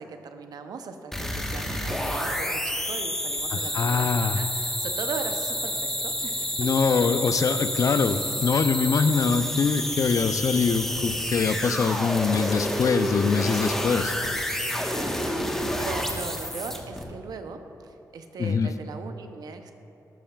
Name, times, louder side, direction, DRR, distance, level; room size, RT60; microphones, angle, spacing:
voice 1, 0.0-6.6 14.9-19.7, right 4 dB, 75° right, 7 dB, 0.6 m, -39 dB
sound 1, 1.1-17.0, equal, 5° left, 1.1 m, -29 dB
voice 2, 3.5-4.4 6.6-14.1 18.4-18.7, left 5 dB, 55° left, 10 dB, 0.5 m, -23 dB
15.0 x 7.0 x 2.3 m, 2.9 s
cardioid pair, 60°, 7 cm